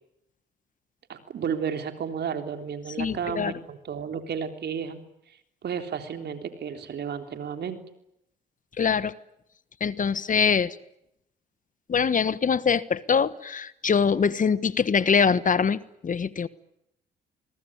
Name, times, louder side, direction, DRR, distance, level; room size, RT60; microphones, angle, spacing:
voice 1, 1.1-5.0 5.6-7.8, right 7 dB, 60° right, 3.5 m, -32 dB
voice 2, 3.0-3.5 8.8-9.1 9.8-10.8 11.9-16.5, left 6 dB, 45° left, 1.3 m, -23 dB
25.0 x 22.0 x 9.8 m
supercardioid pair, 60°, 19 cm